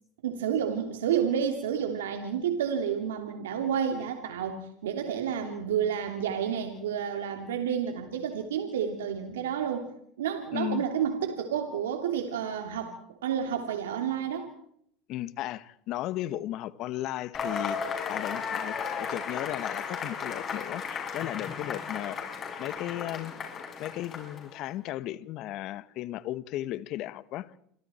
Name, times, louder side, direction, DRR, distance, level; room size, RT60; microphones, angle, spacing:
voice 1, 0.2-9.9 10.2-14.5, right 8 dB, 90° right, 2.9 m, -30 dB
voice 2, 10.5-10.8 15.1-17.8 18.1-22.3 22.6-23.3 23.8-27.5, left 14 dB, 55° left, 1.5 m, -35 dB
Cheering / Applause / Crowd, 17.3-24.6, left 6 dB, 35° left, 7.6 m, -35 dB
28.5 x 24.0 x 4.5 m
supercardioid pair, 100°, 0 cm